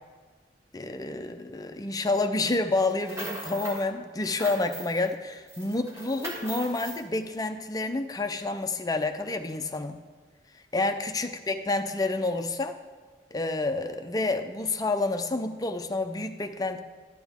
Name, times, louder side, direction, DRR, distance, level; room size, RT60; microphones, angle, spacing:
voice 1, 0.7-10.0 10.7-12.8 13.3-16.8, left 2 dB, 20° left, 7 dB, 0.5 m, -29 dB
sound 1, 2.8-3.9 4.2-5.1 5.5-7.0, right 1 dB, 15° right, 1.7 m, -39 dB
12.5 x 9.3 x 3.6 m, 1.4 s
head